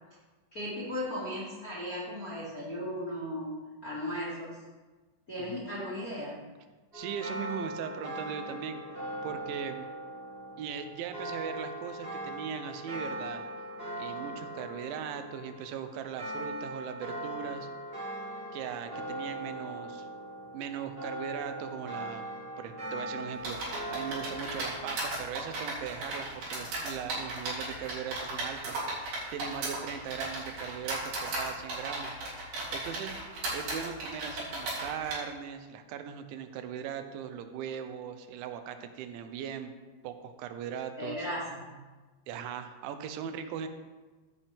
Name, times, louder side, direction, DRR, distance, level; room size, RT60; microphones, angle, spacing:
voice 1, 0.5-3.5 3.8-4.6 5.3-6.4 41.0-41.7, equal, 30° left, -8 dB, 1.6 m, -36 dB
sound 1, 6.9-25.0, right 1 dB, 25° right, 4.2 m, -40 dB
voice 2, 6.9-8.8 9.2-9.9 10.6-13.4 14.0-17.7 18.5-20.1 20.5-22.2 22.6-33.2 33.5-39.7 40.0-41.3 42.3-43.7, right 8 dB, 90° right, 8 dB, 3.2 m, -39 dB
sound 2, 23.4-35.1, right 2 dB, 60° right, 4.9 m, -36 dB
14.5 x 8.7 x 3.5 m, 1.3 s
omnidirectional pair, 5.2 m